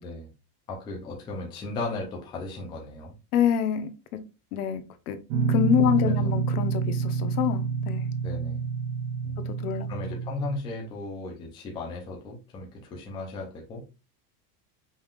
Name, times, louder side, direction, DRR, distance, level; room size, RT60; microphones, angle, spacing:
voice 1, 0.7-3.1 6.0-6.4 8.2-8.6 9.2-9.5 9.9-13.9, left 3 dB, 10° left, 0.5 m, -36 dB
voice 2, 3.3-4.2 4.5-5.2 5.5-8.1 9.6-9.9, left 9 dB, 70° left, 1.0 m, -26 dB
Guitar, 5.3-10.6, right 6 dB, 45° right, 0.7 m, -28 dB
5.5 x 3.4 x 2.4 m
supercardioid pair, 180°, 46 cm